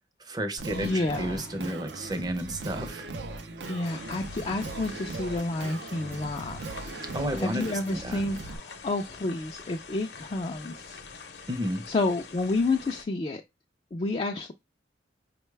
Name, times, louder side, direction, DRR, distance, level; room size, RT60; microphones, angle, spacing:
voice 1, 0.2-3.1 7.1-8.2 11.5-11.9, equal, 20° right, 0.6 m, -32 dB
Singing, 0.6-8.6, right 3 dB, 65° right, 0.5 m, -39 dB
voice 2, 0.7-1.5 3.7-6.6 7.4-11.0 11.9-13.4 13.9-14.5, left 2 dB, 30° left, 0.3 m, -30 dB
sound 1, 3.8-13.0, left 5 dB, 60° left, 0.7 m, -45 dB
5.2 x 2.2 x 3.2 m
head